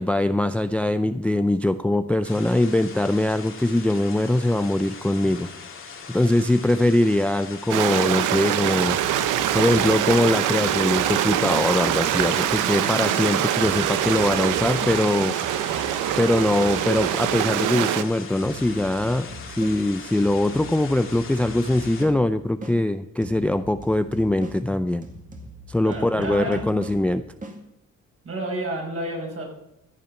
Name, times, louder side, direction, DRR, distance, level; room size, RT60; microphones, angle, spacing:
voice 1, 0.0-5.5 6.1-9.0 9.5-15.6 16.2-25.0 25.7-27.2, left 1 dB, 5° left, 12 dB, 0.4 m, -22 dB
sound 1, 2.2-22.0, left 5 dB, 45° left, 2.0 m, -41 dB
Stream, 7.7-18.0, right 11 dB, 90° right, 0.7 m, -24 dB
sound 2, 8.8-13.2 13.6-18.0 18.4-22.8 23.2-27.6, right 1 dB, 25° right, 2.1 m, -41 dB
voice 2, 25.8-26.7 28.2-29.4, right 1 dB, 45° right, -1 dB, 5.5 m, -30 dB
15.0 x 7.3 x 5.8 m, 0.82 s
cardioid pair, 90°, 30 cm